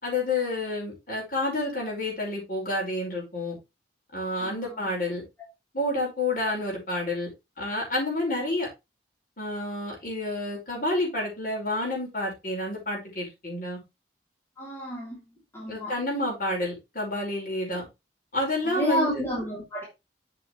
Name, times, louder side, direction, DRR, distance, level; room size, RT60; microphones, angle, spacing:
voice 1, 0.0-3.6 4.1-5.2 5.7-7.3 7.6-8.7 9.4-13.8 15.7-17.9 18.3-19.2, left 2 dB, 50° left, -1 dB, 5.2 m, -29 dB
voice 2, 14.6-15.2 15.5-15.9 18.7-19.8, equal, 15° left, -5 dB, 3.1 m, -29 dB
8.1 x 6.8 x 3.2 m, 0.23 s
head